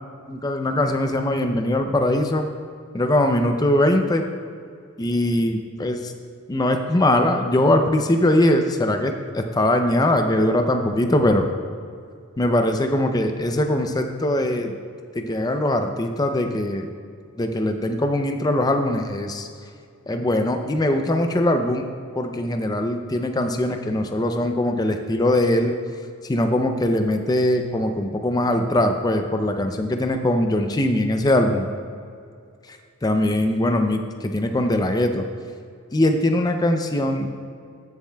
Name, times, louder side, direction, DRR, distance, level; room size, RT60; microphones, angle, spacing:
voice 1, 0.3-2.5 2.9-4.2 5.0-6.1 6.5-11.5 12.4-14.8 15.2-16.9 17.4-19.5 20.1-21.9 22.2-25.8 26.2-31.7 32.7-35.2 35.9-37.3, left 1 dB, 15° left, 5 dB, 0.4 m, -21 dB
14.5 x 7.1 x 2.2 m, 2.3 s
head